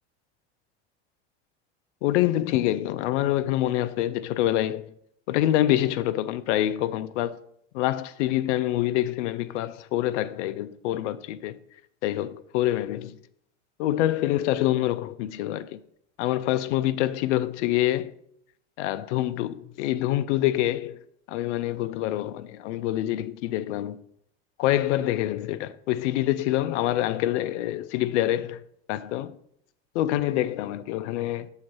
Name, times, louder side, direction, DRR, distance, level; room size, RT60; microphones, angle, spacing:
voice 1, 2.0-4.9 5.3-7.4 7.7-11.6 12.0-13.1 13.8-15.8 16.2-18.1 18.8-20.9 21.3-24.0 24.6-28.6 28.9-29.3 29.9-31.5, left 14 dB, 80° left, 0.5 m, -26 dB
7.4 x 3.2 x 5.9 m
hypercardioid pair, 90°, 35 cm